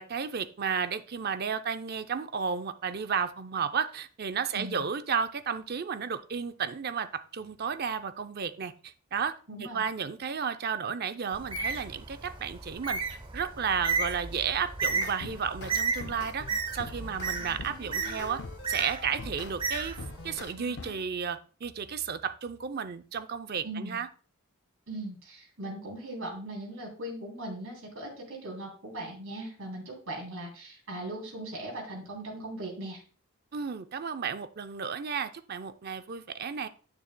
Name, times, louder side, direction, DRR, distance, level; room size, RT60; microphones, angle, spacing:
voice 1, 0.0-13.0 13.3-16.5 16.7-18.4 18.7-24.1 33.5-36.7, right 6 dB, 45° right, 11 dB, 0.5 m, -33 dB
voice 2, 9.5-9.8 23.6-24.0 24.9-33.0, right 1 dB, 65° right, -1 dB, 3.2 m, -39 dB
Bird, 11.3-20.4, right 4 dB, 25° right, 0.9 m, -34 dB
sound 1, 14.8-19.6 20.0-21.1, left 4 dB, 50° left, 0.5 m, -44 dB
9.9 x 9.1 x 2.2 m, 0.39 s
head